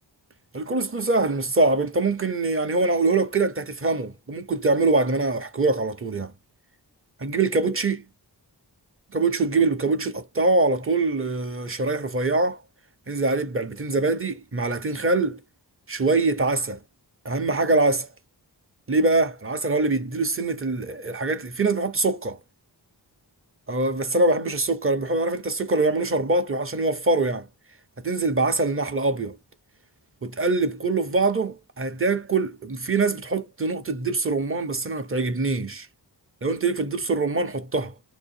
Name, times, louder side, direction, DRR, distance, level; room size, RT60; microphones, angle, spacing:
voice 1, 0.5-6.3 7.2-8.0 9.1-12.6 13.1-15.4 15.9-16.8 17.2-18.1 18.9-22.4 23.7-27.5 28.0-29.4 30.2-35.9 36.4-37.9, right 3 dB, 30° right, 0.8 m, -24 dB
3.8 x 2.7 x 4.6 m
wide cardioid pair, 85°, 42 cm